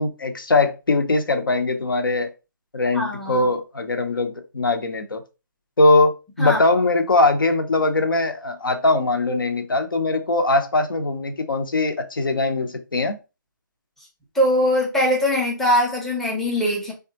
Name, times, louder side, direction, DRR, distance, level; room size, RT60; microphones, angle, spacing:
voice 1, 0.0-2.3 2.7-5.2 5.8-13.2, left 2 dB, 80° left, 0.7 m, -21 dB
voice 2, 2.9-3.5 6.4-6.6 14.3-16.9, equal, ahead, 0.5 m, -21 dB
3.4 x 2.3 x 2.8 m
figure-of-eight pair, 150°, 11 cm